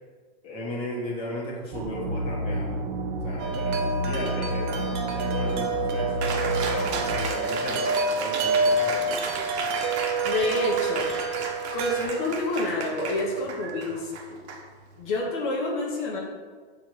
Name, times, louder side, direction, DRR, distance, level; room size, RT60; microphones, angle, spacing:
voice 1, 0.4-2.8 3.2-9.6, left 1 dB, 15° left, -5 dB, 1.4 m, -36 dB
sound 1, 1.7-7.1, right 1 dB, 45° right, 1.0 m, -30 dB
Wind chime, 3.4-12.0, right 3 dB, 25° right, 0.3 m, -28 dB
Cheering, 6.2-15.2, right 4 dB, 90° right, 1.1 m, -34 dB
voice 2, 10.2-11.1 11.7-14.4 15.0-16.2, left 2 dB, 50° left, -2 dB, 1.3 m, -28 dB
7.2 x 3.7 x 4.7 m, 1.5 s
supercardioid pair, 155°, 32 cm